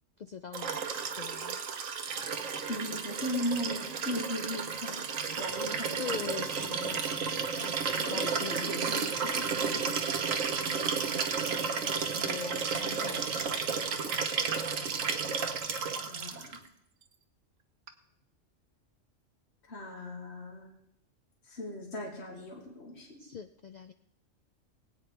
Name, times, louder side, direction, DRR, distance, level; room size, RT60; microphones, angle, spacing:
voice 1, 0.2-0.8 1.2-1.6 6.0-8.8 12.2-13.3 23.2-23.9, left 6 dB, 80° left, 9 dB, 0.3 m, -42 dB
Liquid, 0.5-16.6 17.9-18.0, right 5 dB, 80° right, 1.4 m, -32 dB
voice 2, 2.7-5.0 5.4-6.2 8.0-9.9 14.8-14.9 16.1-16.6 19.6-20.7 21.5-23.2, left 1 dB, 55° left, -1 dB, 2.3 m, -38 dB
20.5 x 9.0 x 3.3 m, 0.76 s
omnidirectional pair, 1.3 m